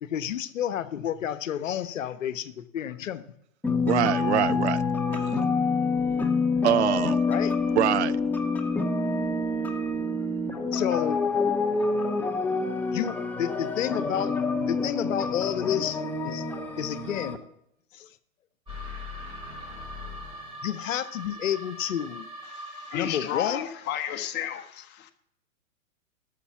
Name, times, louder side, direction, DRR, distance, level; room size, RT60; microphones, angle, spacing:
voice 1, 0.0-3.2 3.7-3.8 7.3-7.5 10.7-11.4 12.9-16.5 16.8-17.4 17.9-18.2 20.6-22.3 22.9-23.6, left 10 dB, 65° left, 1.0 m, -30 dB
sound 1, 3.6-17.4, left 4 dB, 5° left, 0.7 m, -27 dB
voice 2, 3.9-4.8 5.1-5.5 6.6-7.2 7.7-8.2, right 12 dB, 55° right, 0.5 m, -25 dB
sound 2, 18.7-23.6, left 1 dB, 10° right, 4.6 m, -40 dB
voice 3, 22.5-25.1, left 10 dB, 25° left, 1.2 m, -33 dB
12.5 x 6.7 x 6.0 m
hypercardioid pair, 125°, 41 cm